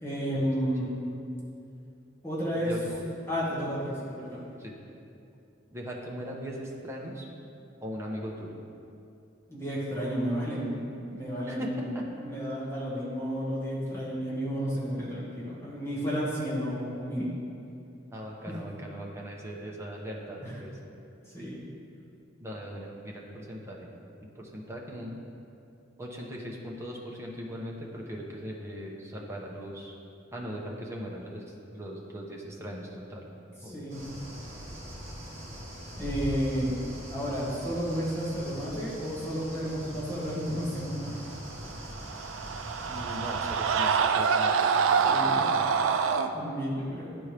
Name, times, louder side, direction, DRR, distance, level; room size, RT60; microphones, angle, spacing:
voice 1, 0.0-1.0 2.2-2.7 3.3-4.4 9.5-10.8 11.1-17.3 18.5-18.6 20.4-20.6 21.3-21.6 33.6-34.1 36.0-36.8 37.1-41.3 45.0-45.5 46.3-47.1, equal, 15° left, -7 dB, 1.4 m, -32 dB
voice 2, 2.5-3.0 4.6-4.8 5.7-7.3 7.8-8.6 11.5-12.0 18.1-20.7 22.4-23.9 24.2-25.2 26.0-29.9 30.3-31.4 31.7-33.2 33.6-33.8 42.9-45.9, equal, 15° right, -2 dB, 0.8 m, -39 dB
sound 1, 33.9-43.8, equal, 35° right, 1.6 m, -41 dB
Screaming, 41.8-46.3, right 6 dB, 80° right, 0.4 m, -26 dB
11.0 x 4.4 x 3.3 m, 2.7 s
head